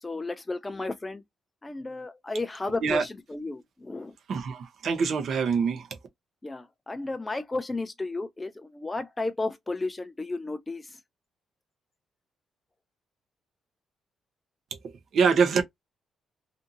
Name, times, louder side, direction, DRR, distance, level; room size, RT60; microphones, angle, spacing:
voice 1, 0.0-1.2 1.6-4.1 6.4-11.0, left 2 dB, 15° left, 0.3 m, -33 dB
voice 2, 4.3-5.9 14.8-15.6, right 5 dB, 60° right, 0.6 m, -25 dB
2.6 x 2.6 x 2.4 m
cardioid pair, 130°, 0 cm